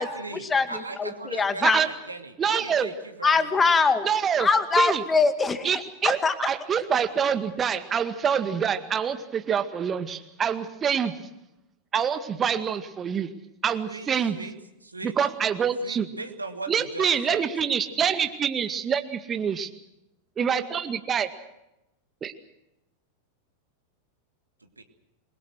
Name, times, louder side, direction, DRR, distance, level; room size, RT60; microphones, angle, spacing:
voice 1, 0.0-3.7 13.9-14.5 14.8-15.2 15.8-17.4 24.8-24.9, right 3 dB, 80° right, 6 dB, 2.7 m, -39 dB
voice 2, 1.0-1.8 3.2-4.0 4.4-5.7 6.0-6.3, left 4 dB, 15° left, 11 dB, 2.2 m, -22 dB
voice 3, 2.4-2.9 4.0-4.5 4.8-5.0 5.6-6.2 6.5-11.1 11.9-13.3 13.6-14.4 15.0-16.1 16.7-19.7 20.4-21.3 22.2-22.3, right 7 dB, 25° right, 9 dB, 2.0 m, -26 dB
27.5 x 22.5 x 6.3 m, 0.89 s
figure-of-eight pair, 90°, 0 cm